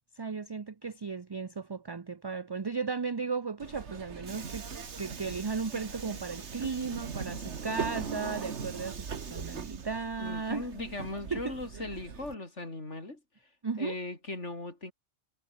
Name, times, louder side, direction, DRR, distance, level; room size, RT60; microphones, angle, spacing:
voice 1, 0.2-4.7 5.0-10.7 11.3-11.6 13.6-14.0, right 5 dB, 30° right, 0.5 m, -35 dB
Subway metro underground, 3.6-12.3, right 6 dB, 70° right, 1.8 m, -40 dB
voice 2, 10.2-13.2 13.8-14.9, left 2 dB, 75° left, 5.0 m, -38 dB
omnidirectional pair, 1.2 m